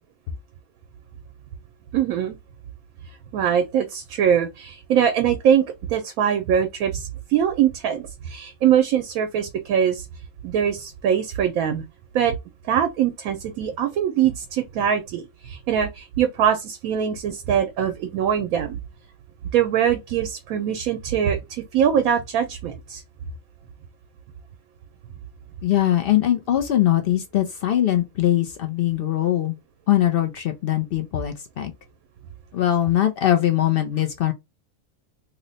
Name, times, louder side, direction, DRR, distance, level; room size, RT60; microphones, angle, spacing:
voice 1, 1.9-2.4 3.3-10.1 10.4-11.8 12.1-12.4 12.7-18.8 19.5-23.0, right 9 dB, 80° right, 1.0 m, -22 dB
voice 2, 25.6-29.6 29.9-31.7 32.5-34.3, left 12 dB, 70° left, 0.5 m, -21 dB
2.9 x 2.1 x 3.8 m
omnidirectional pair, 1.5 m